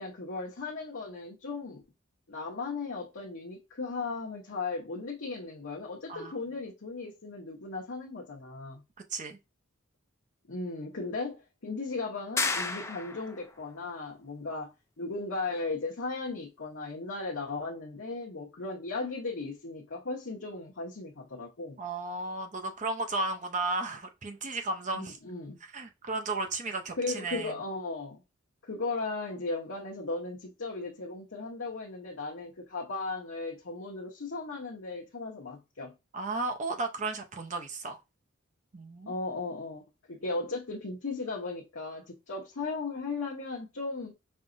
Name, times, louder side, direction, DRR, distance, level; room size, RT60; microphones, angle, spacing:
voice 1, 0.0-1.8 2.3-8.8 10.5-21.8 24.9-25.6 27.0-28.2 28.6-35.9 39.1-39.8 40.1-44.1, left 3 dB, 70° left, 0.9 m, -36 dB
sound 1, 12.4-13.4, left 3 dB, 15° left, 0.4 m, -31 dB
voice 2, 21.8-25.2 25.7-27.5 36.1-38.0 38.7-39.1, right 3 dB, 35° right, 0.6 m, -34 dB
5.4 x 2.9 x 2.5 m
head